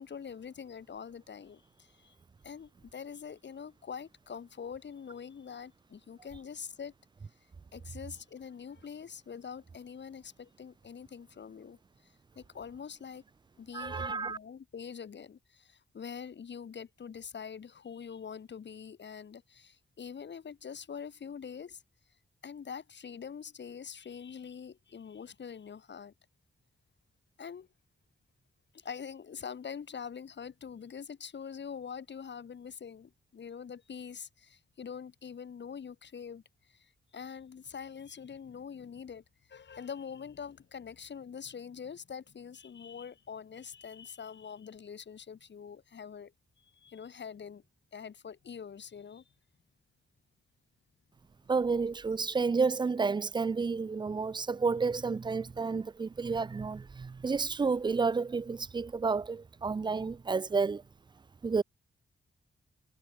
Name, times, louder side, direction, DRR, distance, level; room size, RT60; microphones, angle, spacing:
voice 1, 0.0-2.2 2.4-6.9 7.7-13.2 13.6-21.8 22.4-26.1 27.4-27.7 28.7-36.4 36.7-39.2 39.5-46.3 46.6-47.6 47.9-49.2, left 7 dB, 60° left, 1.8 m, -44 dB
voice 2, 13.7-14.4 51.5-60.8 61.4-61.6, right 4 dB, 20° right, 0.3 m, -30 dB
cardioid pair, 95°, 21 cm